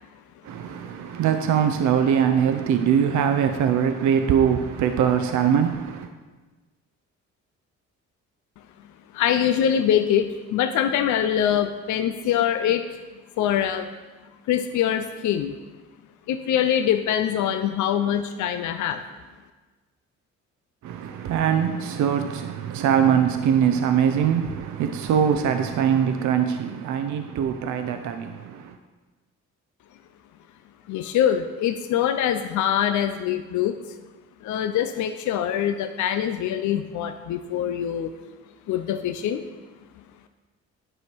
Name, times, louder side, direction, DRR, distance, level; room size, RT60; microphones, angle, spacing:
voice 1, 0.4-6.1 20.8-28.8, right 8 dB, 70° right, 0.6 m, -22 dB
voice 2, 9.1-12.9 13.4-13.9 14.5-15.6 16.3-19.0 30.9-33.8 34.4-38.1 38.7-39.4, left 9 dB, 75° left, 0.6 m, -24 dB
10.0 x 5.6 x 4.5 m
cardioid pair, 90°, 30 cm